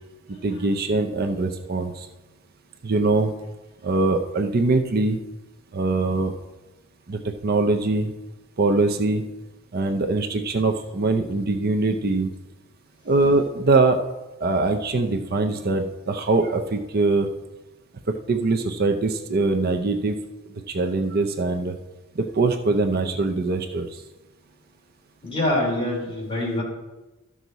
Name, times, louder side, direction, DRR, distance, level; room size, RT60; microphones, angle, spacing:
voice 1, 0.4-2.1 2.8-3.4 3.8-5.2 5.7-6.3 7.1-8.1 8.6-9.3 9.7-12.3 13.1-14.0 14.4-17.3 18.3-20.2 20.7-21.8 22.2-24.0, right 3 dB, 45° right, 6 dB, 0.6 m, -22 dB
voice 2, 25.2-26.6, left 1 dB, 25° left, -4 dB, 3.3 m, -25 dB
13.0 x 6.2 x 4.0 m, 1.1 s
head